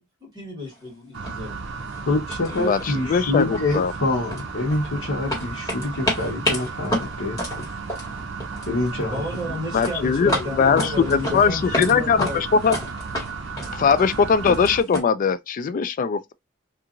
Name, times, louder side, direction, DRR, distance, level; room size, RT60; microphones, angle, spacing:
voice 1, 0.2-1.6 9.1-12.4, left 2 dB, 20° right, 1.6 m, -31 dB
sound 1, 0.7-0.8 1.2-1.5 1.8-2.0 2.3-3.1 3.4-4.9 5.3-8.8 9.1-9.5 9.8-11.9 12.2-15.0, left 1 dB, 20° left, 1.5 m, -30 dB
sound 2, 1.1-14.8, right 4 dB, 65° right, 0.6 m, -34 dB
voice 2, 2.0-7.7 8.7-9.2, left 2 dB, 75° left, 0.9 m, -26 dB
voice 3, 2.6-3.9 9.7-12.8 13.7-16.3, left 6 dB, 40° left, 0.3 m, -21 dB
2.8 x 2.5 x 2.4 m
head